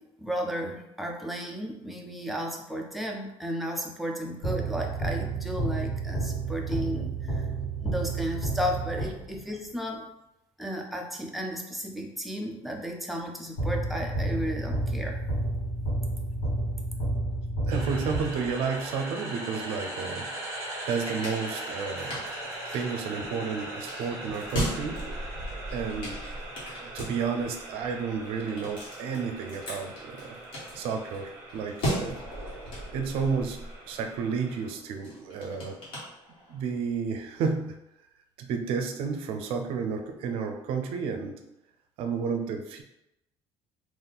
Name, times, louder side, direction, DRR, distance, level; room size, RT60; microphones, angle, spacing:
voice 1, 0.0-7.5 7.8-10.0 10.6-15.2, equal, ahead, 0 dB, 0.4 m, -34 dB
sound 1, 4.4-9.5 13.6-18.8, right 2 dB, 70° left, 1.4 m, -30 dB
sound 2, 17.7-34.7, right 1 dB, 25° right, 0.7 m, -40 dB
voice 2, 17.7-20.3 20.9-22.2 22.7-25.1 25.7-26.2 26.8-30.4 30.7-32.2 32.9-35.8 36.5-37.8 38.4-41.3 42.0-42.8, right 5 dB, 60° right, 5 dB, 0.5 m, -31 dB
sound 3, 20.5-36.7, equal, 50° left, 1.4 m, -38 dB
3.5 x 2.5 x 3.9 m, 0.88 s
cardioid pair, 180°, 11 cm